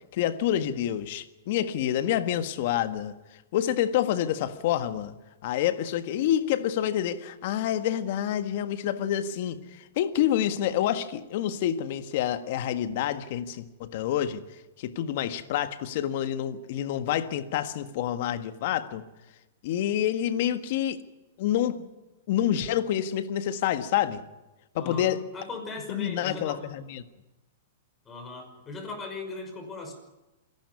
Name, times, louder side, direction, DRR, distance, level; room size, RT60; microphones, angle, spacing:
voice 1, 0.1-3.1 3.5-5.1 5.4-14.4 14.8-19.0 19.6-21.0 21.4-21.9 22.3-24.2 24.7-25.2 25.9-27.0, left 11 dB, 55° left, 10 dB, 1.6 m, -28 dB
voice 2, 24.8-26.7 28.1-29.9, left 3 dB, 20° left, 4 dB, 5.8 m, -38 dB
26.0 x 11.5 x 9.8 m, 1.0 s
hypercardioid pair, 135°, 0 cm